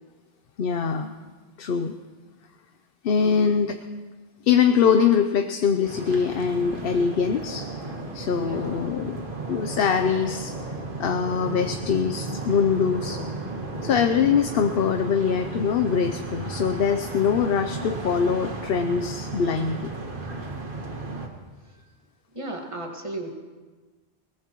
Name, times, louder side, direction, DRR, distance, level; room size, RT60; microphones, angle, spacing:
voice 1, 0.6-1.1 1.6-1.9 3.0-3.8 4.4-7.7 8.1-9.2 9.5-10.5 11.0-13.2 13.8-19.9, left 6 dB, 65° left, 6 dB, 0.9 m, -23 dB
voice 2, 3.2-3.8 8.4-9.0 21.6-21.9 22.3-23.3, right 2 dB, 30° right, 2 dB, 1.8 m, -36 dB
sound 1, 5.8-21.3, right 2 dB, 55° right, 1.7 m, -34 dB
22.0 x 19.5 x 3.0 m, 1.3 s
omnidirectional pair, 1.1 m